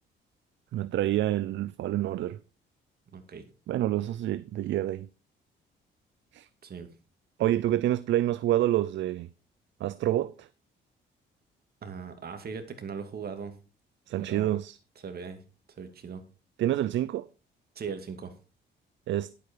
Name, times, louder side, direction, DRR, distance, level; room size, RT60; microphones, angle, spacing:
voice 1, 0.7-2.4 3.7-5.1 6.3-6.5 7.4-9.3 9.8-10.5 14.1-14.8 16.6-17.3 19.1-19.3, right 13 dB, 70° right, 0.5 m, -27 dB
voice 2, 3.1-3.5 6.6-6.9 11.8-13.6 14.2-14.6 15.0-15.4 15.8-16.2 17.8-18.3, right 6 dB, 50° right, 2.5 m, -39 dB
11.0 x 8.5 x 4.6 m
cardioid pair, 90°, 20 cm